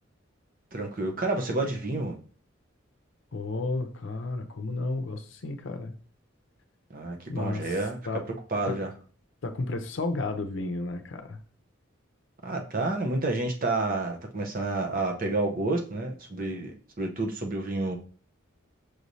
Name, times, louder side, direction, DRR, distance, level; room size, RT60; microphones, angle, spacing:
voice 1, 0.7-2.2 6.9-8.0 8.5-8.9 12.4-16.7 17.0-18.0, right 2 dB, 45° right, 2 dB, 0.8 m, -29 dB
voice 2, 3.3-6.0 7.3-7.8 8.1-8.2 8.7-8.8 9.4-11.4, left 2 dB, 70° left, 7 dB, 0.6 m, -32 dB
6.3 x 3.1 x 2.7 m, 0.41 s
head